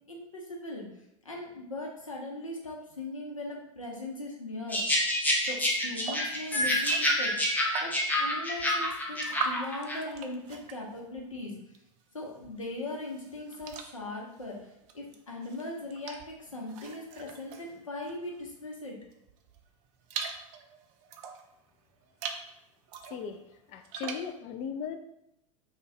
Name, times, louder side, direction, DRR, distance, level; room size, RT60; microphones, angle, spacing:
voice 1, 0.1-0.9 1.2-5.0 5.4-7.4 7.8-11.6 12.1-19.0, left 2 dB, 85° left, -1 dB, 0.9 m, -39 dB
sound 1, 4.7-10.0, left 1 dB, 10° left, 0.8 m, -28 dB
sound 2, 6.0-8.2 8.6-12.0 12.3-18.6 19.1-21.5 22.0-22.5 22.9-24.4, right 6 dB, 45° right, 0.5 m, -42 dB
voice 2, 23.1-23.4 23.7-25.0, left 7 dB, 40° left, 7 dB, 0.4 m, -37 dB
3.3 x 2.4 x 4.2 m, 0.83 s
figure-of-eight pair, 85°, 17 cm